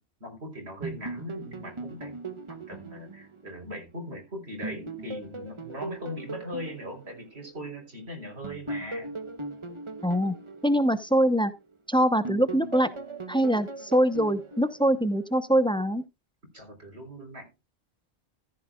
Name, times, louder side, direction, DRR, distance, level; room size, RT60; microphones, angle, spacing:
voice 1, 0.2-2.1 2.5-9.1 16.5-17.5, equal, 70° right, 4.3 m, -40 dB
sound 1, 0.8-4.2 4.6-7.9 8.4-11.8 12.2-15.5, right 3 dB, 30° right, 1.1 m, -39 dB
voice 2, 10.0-10.3 10.6-11.5 11.9-12.9 13.3-16.0, equal, 5° left, 0.9 m, -23 dB
14.5 x 10.0 x 2.4 m
omnidirectional pair, 1.1 m